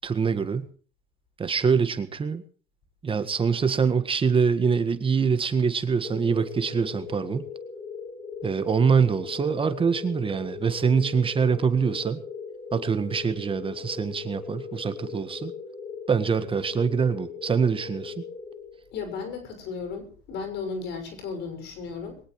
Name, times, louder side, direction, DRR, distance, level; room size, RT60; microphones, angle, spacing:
voice 1, 0.0-0.7 1.4-2.4 3.0-7.5 8.4-12.2 12.7-15.5 16.1-18.1, right 6 dB, 30° right, 11 dB, 1.7 m, -24 dB
sound 1, 6.0-19.2, left 5 dB, 25° left, 4.5 m, -39 dB
voice 2, 18.9-22.2, left 5 dB, 80° left, 7 dB, 6.4 m, -35 dB
22.0 x 18.5 x 3.2 m, 0.42 s
cardioid pair, 110°, 17 cm